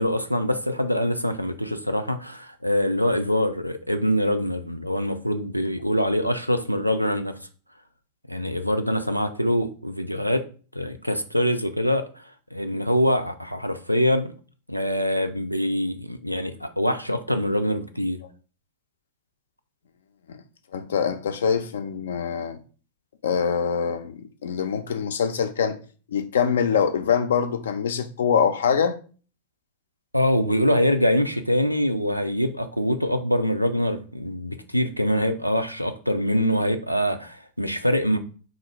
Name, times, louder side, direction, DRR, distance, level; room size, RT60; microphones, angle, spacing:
voice 1, 0.0-7.4 8.3-10.4 10.7-14.3 14.7-18.2 30.1-38.2, equal, 90° right, 0.4 m, -24 dB
voice 2, 20.7-22.6 23.2-25.8 26.1-29.0, left 7 dB, 65° left, 0.4 m, -24 dB
3.6 x 2.5 x 3.3 m
figure-of-eight pair, 90°, 0 cm